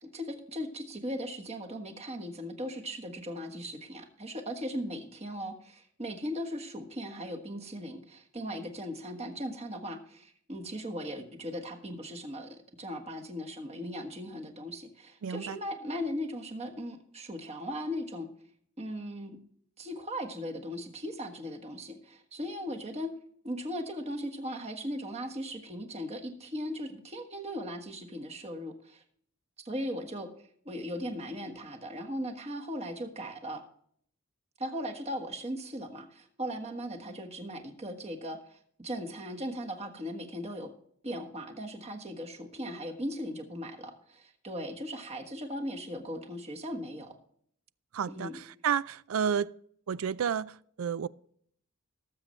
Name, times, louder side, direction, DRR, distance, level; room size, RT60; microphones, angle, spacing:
voice 1, 0.0-18.3 18.8-19.4 19.8-23.2 23.4-29.0 29.6-30.3 30.6-33.6 34.6-40.7 41.0-47.1 48.1-48.4, equal, 30° right, 1.4 m, -38 dB
voice 2, 15.2-15.6 47.9-49.6 49.9-51.1, right 7 dB, 90° right, 0.4 m, -31 dB
18.5 x 7.6 x 3.2 m
head